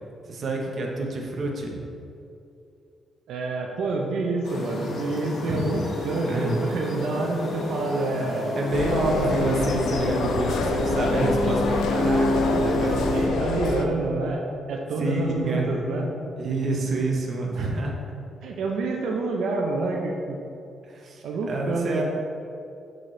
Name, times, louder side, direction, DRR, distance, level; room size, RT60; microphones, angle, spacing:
voice 1, 0.3-1.8 5.4-5.9 6.1-7.1 8.6-13.2 14.9-15.7 16.4-17.9 20.8-22.0, right 2 dB, 40° right, -1 dB, 0.9 m, -28 dB
voice 2, 3.3-8.5 12.8-16.1 17.6-17.7 18.4-20.4 21.2-22.0, right 3 dB, 75° right, 0 dB, 0.6 m, -28 dB
sound 1, 4.4-13.3, left 1 dB, 60° left, 0.9 m, -29 dB
sound 2, 8.7-13.8, left 4 dB, 85° left, 0.5 m, -27 dB
6.5 x 6.2 x 3.2 m, 2.6 s
cardioid pair, 170°, 0 cm